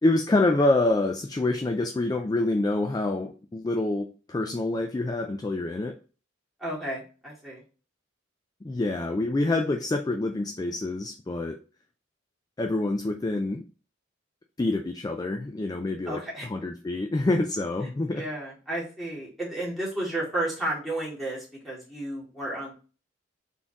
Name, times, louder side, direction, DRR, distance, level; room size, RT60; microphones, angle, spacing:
voice 1, 0.0-6.0 8.6-11.6 12.6-13.6 14.6-18.2, left 2 dB, 20° left, 0.3 m, -26 dB
voice 2, 6.6-7.6 16.1-16.5 18.1-22.7, right 1 dB, ahead, 2.2 m, -32 dB
4.2 x 3.7 x 2.9 m
head